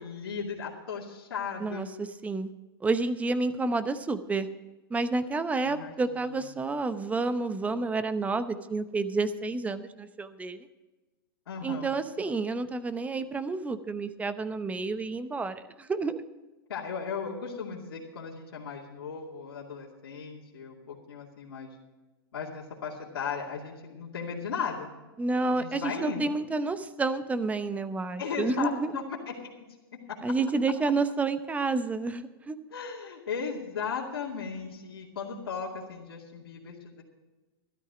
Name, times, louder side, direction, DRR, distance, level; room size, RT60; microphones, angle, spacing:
voice 1, 0.0-1.9 5.6-5.9 6.6-6.7 11.5-12.0 16.7-21.7 22.3-24.9 25.5-26.3 28.2-29.5 29.9-30.2 32.7-37.0, left 6 dB, 80° left, -4 dB, 2.5 m, -36 dB
voice 2, 1.6-2.5 2.8-4.5 4.9-10.7 11.6-16.2 25.2-29.0 30.2-32.6, right 3 dB, 10° right, 12 dB, 0.8 m, -30 dB
12.5 x 12.5 x 5.0 m, 1.1 s
hypercardioid pair, 125°, 13 cm